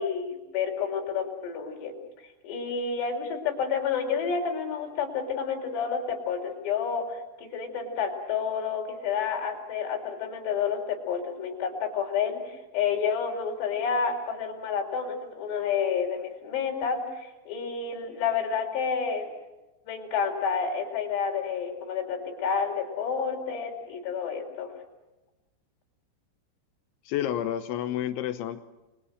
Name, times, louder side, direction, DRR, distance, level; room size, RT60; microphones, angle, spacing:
voice 1, 0.0-1.9 2.4-19.3 19.9-24.7, left 6 dB, 55° left, 1 dB, 6.3 m, -30 dB
voice 2, 27.1-28.6, left 11 dB, 75° left, 10 dB, 3.0 m, -30 dB
30.0 x 23.0 x 6.5 m, 1.0 s
omnidirectional pair, 5.9 m